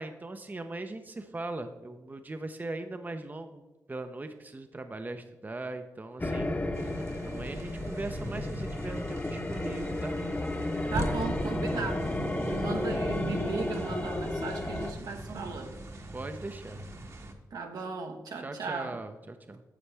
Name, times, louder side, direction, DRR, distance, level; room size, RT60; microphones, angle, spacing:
voice 1, 0.0-3.6 3.9-6.5 7.2-10.2 12.6-13.1 16.1-16.8 18.4-19.6, right 2 dB, 25° right, 7 dB, 0.6 m, -40 dB
sound 1, 6.2-14.9, left 1 dB, 25° left, 1.0 m, -33 dB
sound 2, 6.7-17.3, right 1 dB, 45° right, 1.2 m, -40 dB
voice 2, 10.9-15.7 17.5-19.0, right 4 dB, 75° right, 3 dB, 1.3 m, -36 dB
9.7 x 7.0 x 3.4 m, 1.1 s
cardioid pair, 60°, 7 cm